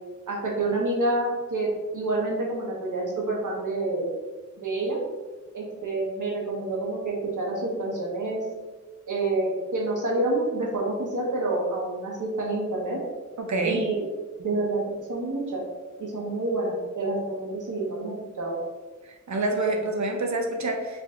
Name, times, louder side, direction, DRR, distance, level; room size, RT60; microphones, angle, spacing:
voice 1, 0.3-4.1 4.6-5.0 5.5-8.4 9.1-13.0 13.6-14.0 14.4-14.8 15.1-15.6 16.0-18.6, right 2 dB, 80° right, -3 dB, 1.1 m, -28 dB
voice 2, 13.4-13.8 19.0-21.0, right 2 dB, 65° right, 3 dB, 0.7 m, -27 dB
4.5 x 2.7 x 3.7 m, 1.3 s
wide cardioid pair, 75°, 30 cm